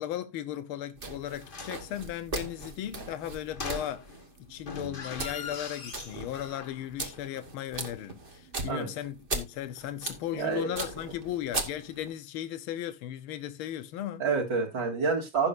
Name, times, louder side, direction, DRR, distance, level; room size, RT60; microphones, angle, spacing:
voice 1, 0.0-4.1 4.5-14.3, left 11 dB, 75° left, 1.7 m, -36 dB
sound 1, 1.0-12.1, right 3 dB, 30° right, 1.2 m, -39 dB
sound 2, 1.4-1.9 3.5-4.3 4.6-6.9 7.1-7.2, left 5 dB, 35° left, 0.9 m, -41 dB
voice 2, 10.3-10.8 14.2-15.5, right 5 dB, 60° right, 2.9 m, -28 dB
16.0 x 6.3 x 2.6 m
omnidirectional pair, 2.4 m